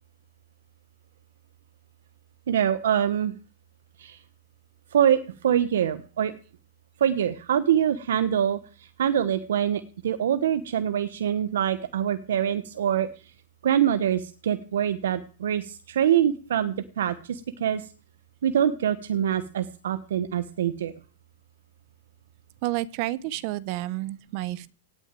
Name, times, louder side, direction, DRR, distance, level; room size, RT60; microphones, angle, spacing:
voice 1, 2.5-3.3 4.0-4.2 4.9-6.3 7.0-13.1 13.6-17.9 18.4-20.9, right 9 dB, 80° right, 12 dB, 1.2 m, -24 dB
voice 2, 22.6-24.7, right 16 dB, 35° right, 20 dB, 0.8 m, -30 dB
18.0 x 6.4 x 9.1 m, 0.39 s
supercardioid pair, 170°, 0 cm